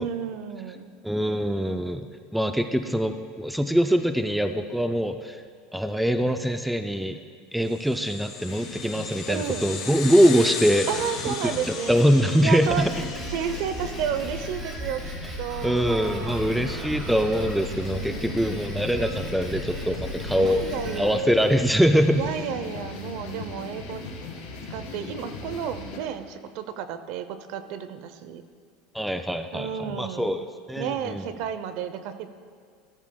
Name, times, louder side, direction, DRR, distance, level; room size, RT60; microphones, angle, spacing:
voice 1, 0.0-0.9 9.3-9.7 10.9-12.0 12.4-12.8 13.3-15.1 15.4-16.5 17.9-18.8 20.4-21.3 22.1-24.0 24.7-28.4 29.5-30.4 30.8-32.3, right 8 dB, 60° right, 11 dB, 0.6 m, -32 dB
voice 2, 1.0-2.1 2.3-5.4 5.7-7.2 7.5-10.9 11.4-11.5 11.9-12.9 15.6-20.6 21.0-22.3 28.9-31.2, equal, ahead, 7 dB, 0.3 m, -23 dB
sound 1, 7.7-14.5, left 6 dB, 40° left, 1.4 m, -36 dB
sound 2, 8.5-26.0, left 3 dB, 80° left, 2.9 m, -39 dB
Drum kit, 12.6-21.0, equal, 20° right, 1.9 m, -36 dB
13.5 x 13.5 x 2.3 m, 2.1 s
supercardioid pair, 155°, 0 cm